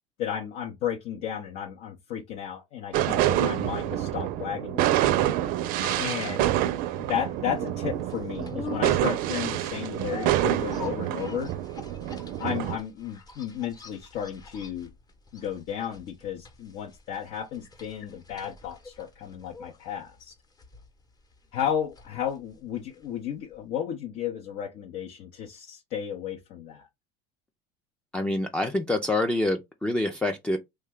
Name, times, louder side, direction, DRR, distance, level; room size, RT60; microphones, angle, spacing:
voice 1, 0.2-4.9 6.0-6.5 7.0-11.5 12.4-14.9 15.3-20.3 21.5-26.9, left 9 dB, 65° left, 0.7 m, -33 dB
sound 1, 2.9-12.8, right 12 dB, 65° right, 0.4 m, -27 dB
sound 2, 5.4-23.3 23.5-23.6, left 5 dB, 25° left, 0.9 m, -46 dB
voice 2, 28.1-30.6, left 2 dB, 5° left, 0.4 m, -26 dB
3.2 x 2.2 x 3.5 m
supercardioid pair, 105°, 16 cm